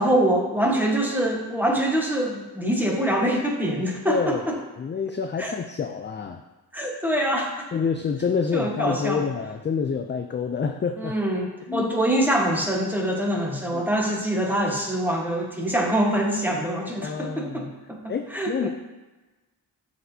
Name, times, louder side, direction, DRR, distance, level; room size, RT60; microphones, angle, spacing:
voice 1, 0.0-4.6 5.4-5.5 6.7-7.5 8.5-9.2 11.0-18.7, right 1 dB, 5° right, -1 dB, 1.2 m, -24 dB
voice 2, 4.1-4.4 4.8-6.4 7.7-11.1 11.7-11.9 13.7-13.9 17.0-17.7 18.1-18.7, left 6 dB, 30° left, 5 dB, 0.3 m, -27 dB
11.0 x 4.2 x 2.7 m, 1.2 s
wide cardioid pair, 90°, 39 cm